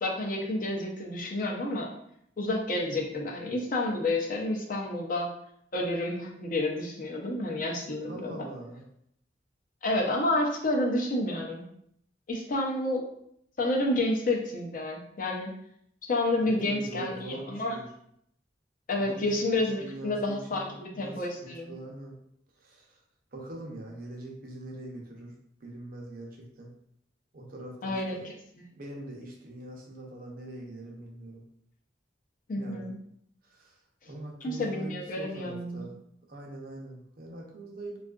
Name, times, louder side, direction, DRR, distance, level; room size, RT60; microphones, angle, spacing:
voice 1, 0.0-1.9 2.4-5.3 5.7-8.5 9.8-11.7 12.3-13.0 13.6-15.5 16.1-17.8 18.9-21.7 27.8-28.3 32.5-32.9 34.4-35.9, left 1 dB, 45° left, 0 dB, 0.5 m, -30 dB
voice 2, 8.1-8.8 16.4-17.9 19.0-22.2 22.6-23.0 23.3-25.3 25.6-26.7 27.3-28.3 28.7-31.4 32.6-32.9 33.4-33.8 34.1-35.9 36.3-38.0, right 1 dB, 50° right, 0 dB, 0.6 m, -43 dB
3.5 x 2.4 x 2.3 m, 0.71 s
head